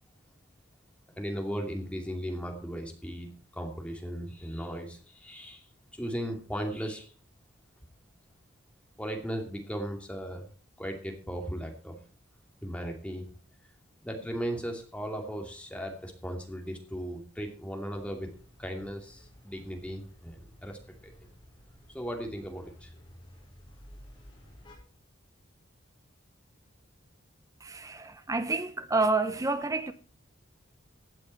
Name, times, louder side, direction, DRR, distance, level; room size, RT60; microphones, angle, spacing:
voice 1, 1.2-5.6 5.9-7.1 9.0-10.5 10.8-12.0 12.6-13.3 14.0-18.3 18.6-21.3 21.9-22.9, equal, 5° left, 2.6 m, -37 dB
sound 1, 17.9-24.8, equal, 25° left, 5.5 m, -54 dB
voice 2, 27.6-29.9, right 3 dB, 15° right, 0.7 m, -29 dB
16.0 x 8.7 x 4.5 m
head